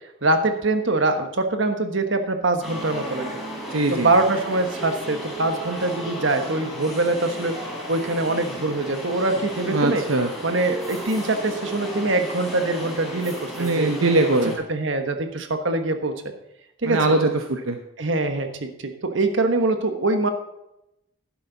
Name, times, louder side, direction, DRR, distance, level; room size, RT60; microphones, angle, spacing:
voice 1, 0.2-3.3 3.9-7.5 7.9-10.0 10.4-13.9 14.7-16.1 16.8-17.0 18.0-20.3, right 2 dB, 65° right, 7 dB, 1.3 m, -23 dB
sound 1, 2.6-14.6, right 1 dB, ahead, 3.7 m, -34 dB
voice 2, 3.7-4.1 9.7-10.3 13.6-14.5 16.8-17.8, right 2 dB, 80° right, 5 dB, 0.9 m, -21 dB
11.5 x 11.5 x 4.0 m, 0.86 s
head